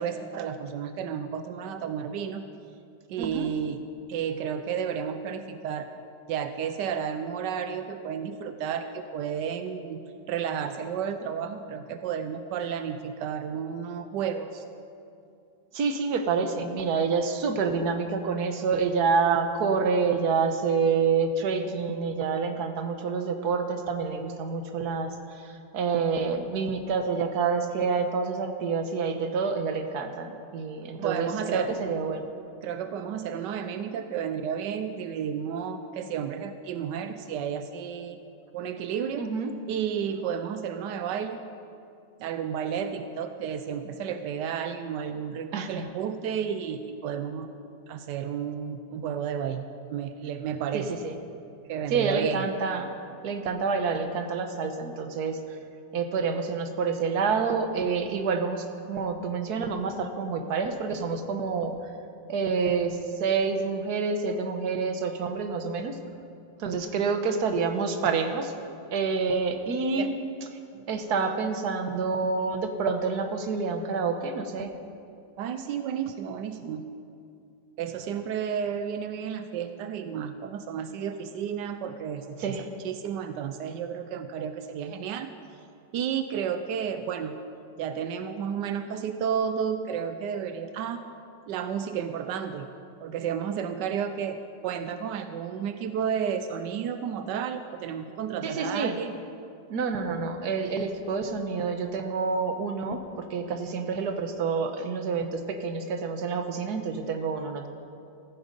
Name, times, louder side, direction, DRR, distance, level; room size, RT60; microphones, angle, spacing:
voice 1, 0.0-2.5 3.1-3.8 4.1-5.9 6.3-14.6 31.0-31.7 32.6-38.2 38.5-39.3 39.7-41.4 42.2-47.5 47.9-49.6 49.9-50.9 51.7-52.4 70.0-70.1 75.4-76.9 77.8-85.3 85.9-87.4 87.8-91.0 91.5-92.7 93.0-99.1, right 8 dB, 90° right, 9 dB, 1.3 m, -32 dB
voice 2, 3.2-3.5 15.7-32.2 39.2-39.5 45.5-45.8 50.7-51.1 51.9-52.9 53.2-55.4 55.9-61.7 62.3-66.0 66.6-68.5 68.9-70.1 70.9-74.7 82.4-82.7 98.4-98.9 99.7-103.0 103.3-107.7, right 5 dB, 70° right, 6 dB, 1.6 m, -28 dB
15.0 x 14.5 x 5.3 m, 2.5 s
omnidirectional pair, 1.8 m